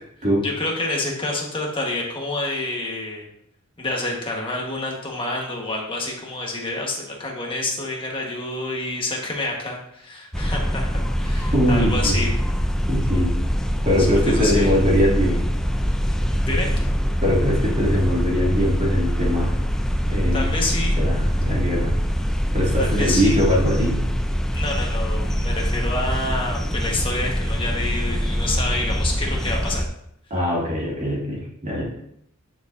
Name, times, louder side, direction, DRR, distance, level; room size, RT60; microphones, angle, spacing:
voice 1, 0.4-3.3 3.8-12.3 14.1-14.7 16.4-16.7 20.3-21.0 22.8-23.4 24.5-29.8, left 2 dB, 25° left, -1 dB, 1.4 m, -28 dB
sound 1, 10.3-29.9, equal, 5° left, 0.3 m, -23 dB
voice 2, 11.5-12.2 12.9-13.3 13.8-15.5 17.2-19.5 20.1-20.5 21.0-21.9 22.5-24.0 30.3-31.8, equal, 35° right, -4 dB, 2.1 m, -21 dB
10.0 x 4.6 x 2.6 m, 0.74 s
head